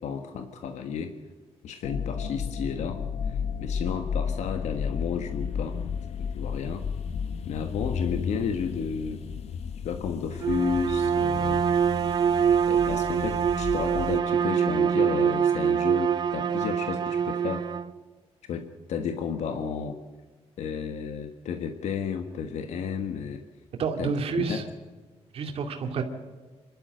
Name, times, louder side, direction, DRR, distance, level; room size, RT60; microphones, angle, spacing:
voice 1, 0.0-1.1 1.6-3.0 3.3-5.8 6.2-6.8 7.5-9.2 9.8-11.6 12.7-17.6 18.5-20.0 20.6-23.4 24.0-24.7, left 6 dB, 85° left, 7 dB, 1.5 m, -32 dB
sound 1, 1.8-14.2, left 6 dB, 70° left, 1.1 m, -33 dB
Bowed string instrument, 10.3-17.9, right 7 dB, 40° right, 0.7 m, -25 dB
voice 2, 23.8-24.6 25.3-26.0, right 5 dB, 60° right, 3 dB, 2.5 m, -29 dB
26.5 x 12.5 x 7.7 m, 1.4 s
wide cardioid pair, 175°, 11 cm